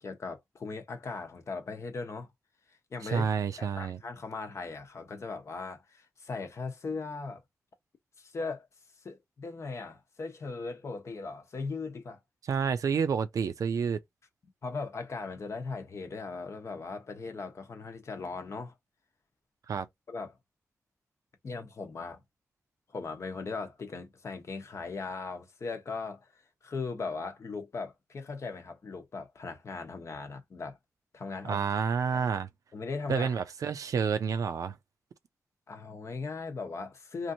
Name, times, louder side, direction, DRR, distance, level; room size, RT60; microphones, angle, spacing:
voice 1, 0.0-2.3 2.9-3.3 3.6-7.4 8.2-8.7 9.0-12.2 14.6-18.7 20.1-20.4 21.4-22.2 22.9-30.8 31.1-31.6 32.1-32.2 32.7-33.4 35.7-37.3, left 4 dB, 60° left, 0.8 m, -38 dB
voice 2, 3.0-4.0 12.5-14.0 19.7-19.9 31.4-32.5 33.1-34.8, right 6 dB, 90° right, 0.4 m, -29 dB
3.0 x 2.6 x 2.6 m
wide cardioid pair, 95°, 6 cm